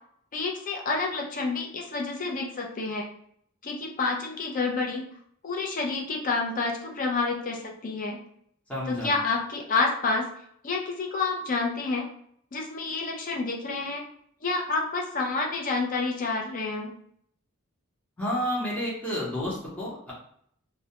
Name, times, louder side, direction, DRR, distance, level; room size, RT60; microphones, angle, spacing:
voice 1, 0.3-3.1 3.6-5.1 5.4-8.2 8.9-10.3 10.6-12.1 12.5-14.1 14.4-16.9, left 3 dB, 40° left, 1 dB, 0.4 m, -29 dB
voice 2, 8.7-9.1 18.2-20.1, equal, 5° left, -9 dB, 0.7 m, -30 dB
2.2 x 2.1 x 2.8 m, 0.66 s
head